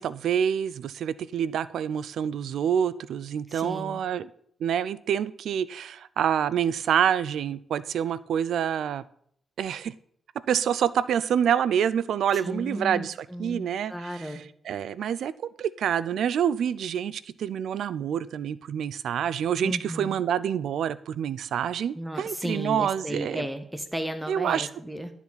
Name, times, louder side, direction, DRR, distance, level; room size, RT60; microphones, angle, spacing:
voice 1, 0.0-4.3 4.6-9.0 9.6-9.9 10.5-13.1 13.4-14.3 14.7-23.4 24.3-24.7, right 8 dB, 80° right, 17 dB, 0.4 m, -27 dB
voice 2, 3.5-4.0 12.3-14.4 19.6-20.2 21.9-25.1, equal, 5° right, 9 dB, 0.8 m, -34 dB
12.0 x 7.1 x 4.1 m, 0.66 s
cardioid pair, 100°, 0 cm